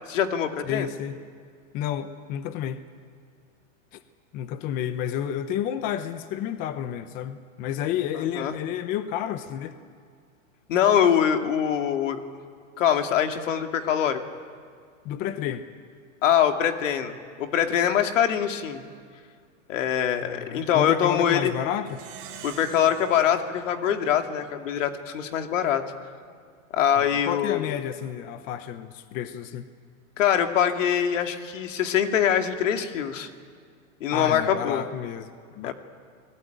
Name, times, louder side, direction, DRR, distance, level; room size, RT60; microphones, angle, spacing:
voice 1, 0.1-0.9 8.4-8.5 10.7-12.2 12.8-14.2 16.2-18.8 19.7-21.5 22.4-25.8 26.7-27.6 30.2-33.3 34.0-34.8 35.6-35.7, left 9 dB, 70° left, 6 dB, 2.5 m, -23 dB
voice 2, 0.7-1.2 1.7-2.9 3.9-4.0 4.3-9.8 15.0-15.7 20.2-22.0 27.0-29.7 34.1-35.7, left 10 dB, 20° left, 11 dB, 0.7 m, -31 dB
Plucked string instrument, 21.9-24.7, right 8 dB, 35° right, 4.5 m, -45 dB
28.5 x 19.5 x 9.2 m, 2.2 s
supercardioid pair, 160°, 40 cm